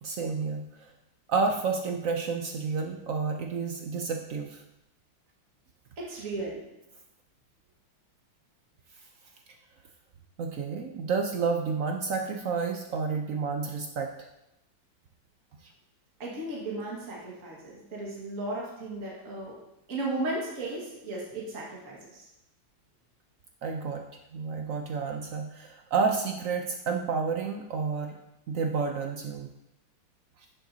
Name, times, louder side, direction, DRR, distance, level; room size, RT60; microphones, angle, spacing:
voice 1, 0.0-0.6 1.3-4.6 10.4-14.1 23.6-24.0 24.3-28.1 28.5-29.5, right 5 dB, 85° right, 3 dB, 0.7 m, -30 dB
voice 2, 6.0-6.6 16.2-19.5 19.9-22.3, right 2 dB, 40° right, -4 dB, 2.1 m, -35 dB
10.5 x 7.6 x 2.8 m, 0.87 s
omnidirectional pair, 2.3 m